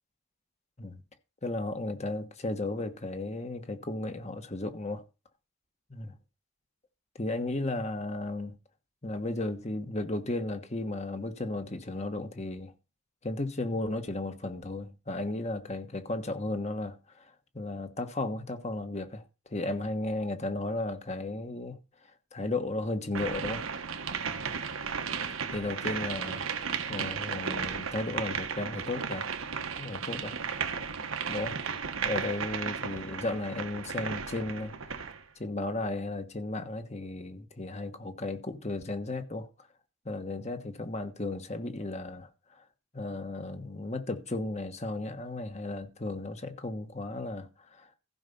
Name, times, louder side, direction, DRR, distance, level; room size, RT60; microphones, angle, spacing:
voice 1, 1.4-5.0 5.9-6.1 7.1-8.6 9.0-12.7 13.2-21.8 22.3-23.6 25.5-29.3 29.8-30.4 31.3-31.6 32.0-35.0 35.4-39.5 40.0-42.6 42.9-47.9, left 2 dB, 30° left, 1.3 m, -35 dB
sound 1, 23.1-35.2, right 6 dB, 85° right, 1.3 m, -34 dB
15.0 x 5.7 x 5.4 m
head